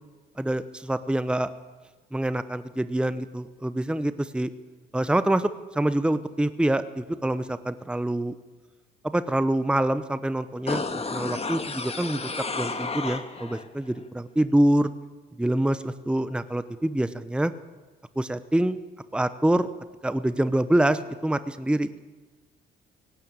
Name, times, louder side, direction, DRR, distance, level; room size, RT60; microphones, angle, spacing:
voice 1, 0.4-1.5 2.1-4.5 4.9-8.3 9.0-14.9 15.4-17.5 18.2-18.8 19.1-19.7 20.0-21.9, right 1 dB, 5° right, 13 dB, 0.8 m, -25 dB
sound 1, 10.7-13.7 14.0-14.1, left 3 dB, 30° left, 1.9 m, -32 dB
17.5 x 17.0 x 8.9 m, 1.4 s
cardioid pair, 90°, 20 cm